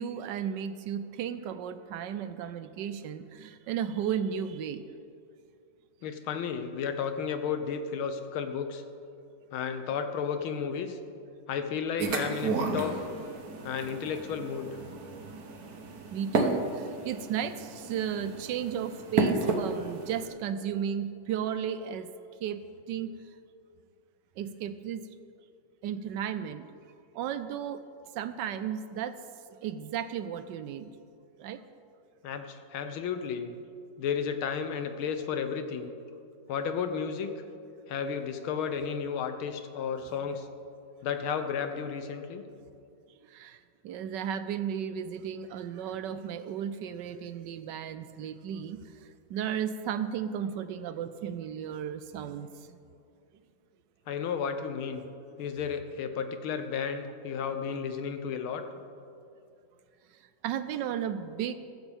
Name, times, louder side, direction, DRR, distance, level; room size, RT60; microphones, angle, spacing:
voice 1, 0.0-4.8 16.1-22.1 22.4-22.6 22.9-23.1 24.4-25.1 25.8-26.7 27.1-27.8 28.1-29.2 29.6-30.9 31.4-31.6 43.3-49.0 49.3-52.8 60.4-61.5, right 8 dB, 70° right, 11 dB, 1.1 m, -34 dB
voice 2, 6.0-8.8 9.5-11.0 11.5-13.0 13.6-14.7 32.2-33.5 34.0-35.9 36.5-37.3 37.9-40.5 41.0-42.4 54.1-55.0 55.4-58.6, left 7 dB, 90° left, 8 dB, 1.8 m, -33 dB
sound 1, 12.0-20.2, right 3 dB, 50° right, 1.5 m, -32 dB
15.0 x 14.5 x 3.6 m, 2.4 s
omnidirectional pair, 2.2 m